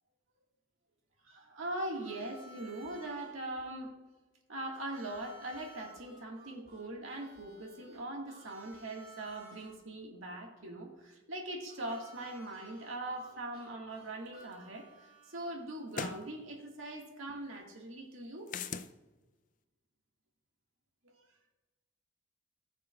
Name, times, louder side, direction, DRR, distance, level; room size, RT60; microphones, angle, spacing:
voice 1, 1.2-3.9 4.5-18.5, right 1 dB, 80° right, 0 dB, 1.8 m, -41 dB
Harmonica, 1.9-3.3 4.7-9.7 11.7-15.6, right 1 dB, 50° right, 3.4 m, -56 dB
sound 1, 14.5-14.6 15.9-16.2 18.5-18.9, left 6 dB, 40° left, 0.4 m, -38 dB
18.0 x 6.8 x 2.4 m, 1.2 s
head